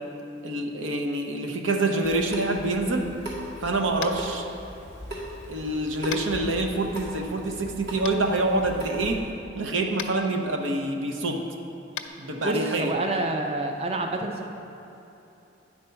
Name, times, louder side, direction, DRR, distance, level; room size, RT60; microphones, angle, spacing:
voice 1, 0.4-3.1 3.6-4.5 5.5-9.2 9.5-11.4 12.2-12.9, right 2 dB, 90° right, 3 dB, 0.8 m, -26 dB
Water tap faucet / Sink (filling or washing) / Drip, 2.0-9.2, equal, 60° right, 2.0 m, -39 dB
Tap, 4.0-4.3 6.1-6.3 8.0-8.1 9.9-10.1 11.9-12.1, left 9 dB, 80° left, 0.5 m, -34 dB
voice 2, 12.4-14.5, right 2 dB, 30° right, 3 dB, 0.4 m, -28 dB
9.8 x 4.3 x 5.7 m, 2.9 s
head